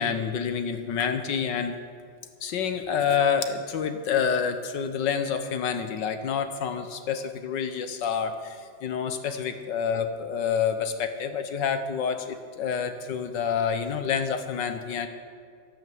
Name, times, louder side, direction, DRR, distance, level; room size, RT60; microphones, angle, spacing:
voice 1, 0.0-1.8 2.4-15.1, left 7 dB, 70° left, 8 dB, 1.6 m, -28 dB
12.5 x 12.0 x 7.7 m, 2.1 s
omnidirectional pair, 2.0 m